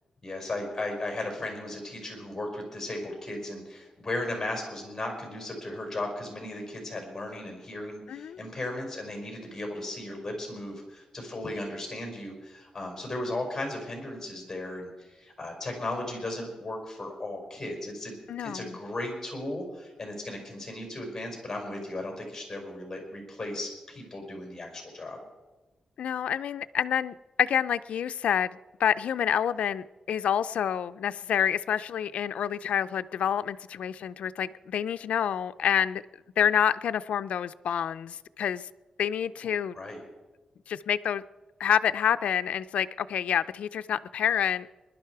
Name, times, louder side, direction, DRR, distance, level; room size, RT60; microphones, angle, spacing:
voice 1, 0.2-25.2 39.7-40.0, left 1 dB, 20° left, 1 dB, 5.1 m, -36 dB
voice 2, 8.1-8.4 18.3-18.8 26.0-28.5 28.8-36.0 36.4-38.7 39.0-39.7 40.7-41.2 41.6-44.7, left 9 dB, 90° left, 13 dB, 0.4 m, -28 dB
20.5 x 11.5 x 4.7 m, 1.2 s
wide cardioid pair, 130°, 2 cm